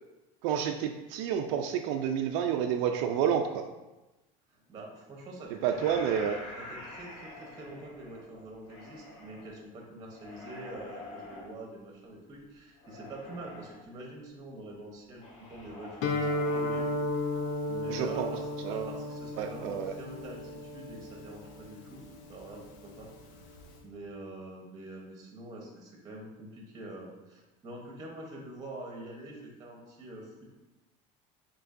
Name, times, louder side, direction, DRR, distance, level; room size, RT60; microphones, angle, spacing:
voice 1, 0.4-3.7 5.6-6.4 17.9-18.9 19.4-19.9, right 8 dB, 70° right, 5 dB, 0.4 m, -30 dB
voice 2, 4.5-6.1 6.6-16.9 17.2-17.4 17.7-23.1 23.4-30.5, right 1 dB, 25° right, 0 dB, 0.8 m, -45 dB
sound 1, 5.7-9.5 10.1-11.5 12.8-13.8 15.2-16.9, left 2 dB, 40° left, 1.0 m, -47 dB
Guitar, 16.0-23.8, left 1 dB, 80° left, 0.7 m, -35 dB
6.8 x 3.0 x 2.5 m, 1.0 s
cardioid pair, 145°, 17 cm